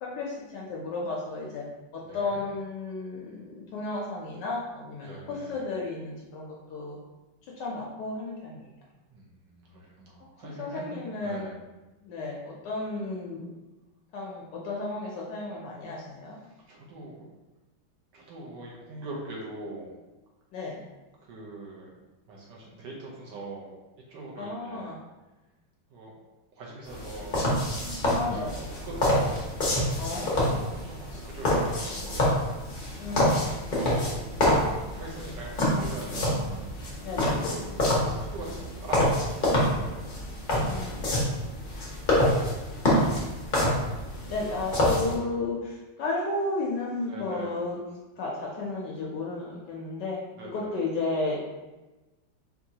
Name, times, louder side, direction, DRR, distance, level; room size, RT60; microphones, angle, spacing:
voice 1, 0.0-1.6 1.9-7.0 7.6-8.7 10.6-11.5 12.0-13.5 14.1-16.4 20.5-20.8 24.4-25.0 28.1-28.6 30.0-30.7 33.0-33.6 37.0-37.4 40.6-41.1 44.3-47.8 48.2-50.2 50.5-51.4, left 3 dB, 70° left, -2 dB, 1.1 m, -33 dB
voice 2, 2.0-2.4 5.0-5.6 9.1-11.6 16.6-17.3 18.1-19.9 21.2-21.9 22.3-23.8 24.1-24.9 25.9-26.1 26.5-27.4 28.2-29.9 30.3-32.4 33.7-34.1 34.9-36.7 37.8-40.1 42.1-43.4 44.3-44.4 47.1-47.6 50.4-50.8, right 2 dB, 65° right, -3 dB, 1.3 m, -42 dB
sound 1, 26.9-45.2, left 1 dB, 55° left, 0.5 m, -27 dB
sound 2, 37.2-39.3, left 3 dB, 90° left, 1.5 m, -40 dB
4.5 x 2.7 x 2.7 m, 1.1 s
omnidirectional pair, 2.2 m